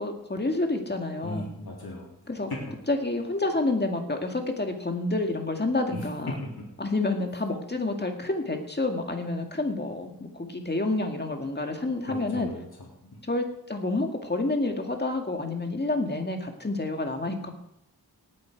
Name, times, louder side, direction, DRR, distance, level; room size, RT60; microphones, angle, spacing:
voice 1, 0.0-1.5 2.3-2.5 2.9-6.4 6.8-12.5 13.3-17.5, left 2 dB, 25° left, 4 dB, 2.1 m, -29 dB
voice 2, 1.2-2.1 5.9-6.0 6.4-6.5 12.1-12.6 13.1-13.2, left 1 dB, 70° left, -3 dB, 3.8 m, -37 dB
18.5 x 8.7 x 4.7 m, 0.78 s
wide cardioid pair, 75°, 38 cm